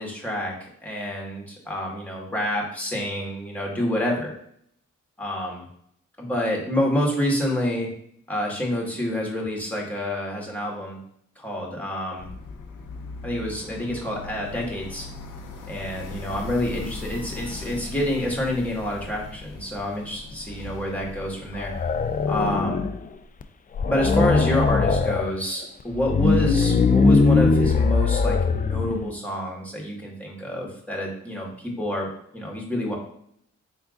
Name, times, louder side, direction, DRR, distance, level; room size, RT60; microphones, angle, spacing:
voice 1, 0.0-4.3 5.2-5.6 6.2-7.9 8.3-11.0 11.3-12.3 13.2-15.1 15.7-21.9 22.3-22.8 23.8-32.1 32.3-33.0, left 1 dB, 5° left, -2 dB, 1.6 m, -28 dB
sound 1, 12.2-22.6, left 3 dB, 85° left, 0.7 m, -39 dB
sound 2, 21.5-23.1 23.4-23.5 23.7-25.3 25.9-29.1, left 4 dB, 30° left, 0.4 m, -21 dB
4.7 x 3.4 x 2.5 m, 0.68 s
cardioid pair, 50°, 31 cm